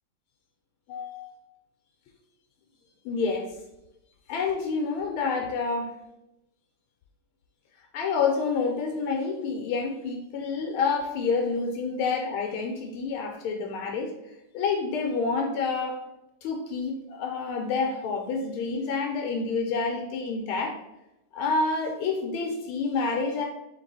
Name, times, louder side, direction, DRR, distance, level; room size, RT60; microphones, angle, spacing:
voice 1, 0.9-1.3 3.0-3.5 4.3-5.9 7.9-14.1 14.5-16.0 16.4-20.8 21.3-23.5, left 4 dB, 85° left, 1 dB, 1.5 m, -28 dB
4.4 x 3.0 x 4.0 m, 0.90 s
omnidirectional pair, 2.4 m